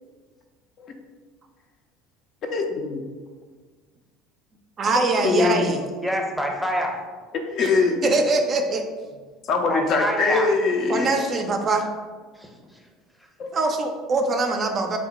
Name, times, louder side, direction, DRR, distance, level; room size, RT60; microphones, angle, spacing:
voice 1, 2.4-3.0 4.9-5.7 7.3-8.1 9.4-11.2 13.4-13.5, left 4 dB, 50° left, 4 dB, 0.4 m, -23 dB
voice 2, 4.8-5.8 8.0-8.9 10.9-11.9 13.5-15.0, right 3 dB, 40° right, 4 dB, 0.4 m, -23 dB
voice 3, 6.0-7.0 9.7-10.5 12.3-12.5, equal, ahead, 1 dB, 0.7 m, -26 dB
3.0 x 2.1 x 4.0 m, 1.5 s
hypercardioid pair, 70°, 0 cm